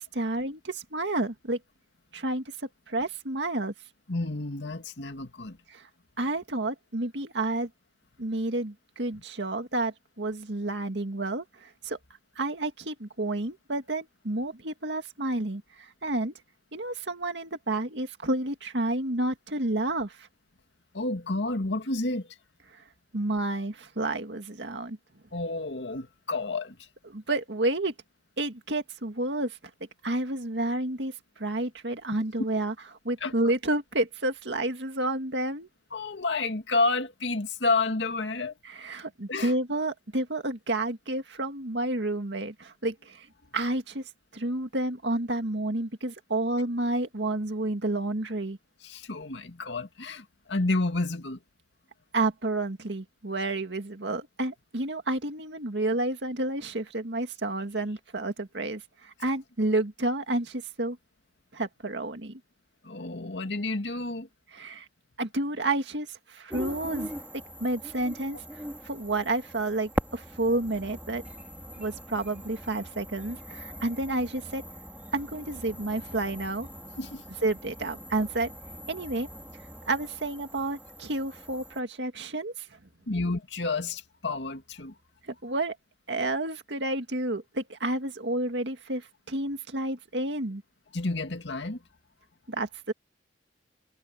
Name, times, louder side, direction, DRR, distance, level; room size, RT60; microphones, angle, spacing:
voice 1, 0.1-1.6 2.1-3.7 5.7-5.9 6.2-7.7 8.2-12.0 12.4-16.3 16.7-20.3 22.7-22.8 23.1-25.0 27.1-27.9 28.4-29.6 30.0-32.7 33.0-35.7 38.6-44.1 44.3-48.6 52.1-61.0 61.5-62.4 64.5-64.9 65.2-67.1 67.6-71.2 71.8-74.6 75.1-76.7 77.4-78.5 78.9-79.3 79.9-82.8 85.2-85.8 86.1-90.6 92.5-92.9, right 2 dB, 80° right, 2.0 m, -30 dB
voice 2, 4.1-5.6 20.9-22.3 25.3-26.9 33.2-33.3 35.9-38.5 39.3-39.5 48.8-51.4 62.8-64.3 77.0-77.2 83.1-84.9 90.9-91.8, left 3 dB, 80° left, 2.2 m, -30 dB
sound 1, 66.5-81.8, equal, 10° right, 2.7 m, -41 dB
head